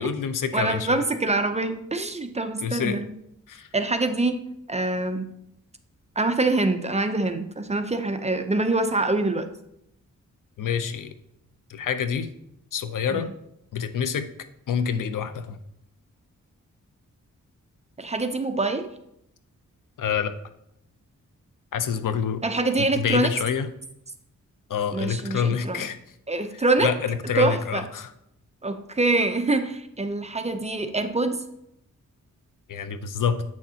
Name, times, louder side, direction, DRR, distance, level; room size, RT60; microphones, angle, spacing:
voice 1, 0.0-1.0 2.6-3.0 3.5-3.7 10.6-11.1 11.7-12.3 12.7-13.3 13.7-14.3 14.7-15.6 20.0-20.4 21.7-22.4 23.0-23.7 24.7-26.0 26.8-28.1 32.7-33.4, left 7 dB, 75° left, 11 dB, 0.7 m, -27 dB
voice 2, 0.5-3.1 3.7-4.4 4.7-5.3 6.2-9.5 13.1-13.2 18.0-18.9 22.4-23.3 24.9-25.9 26.3-26.9 27.4-27.9 28.6-31.4, right 2 dB, 20° right, 7 dB, 0.6 m, -25 dB
8.4 x 6.4 x 2.8 m, 0.79 s
wide cardioid pair, 90°, 32 cm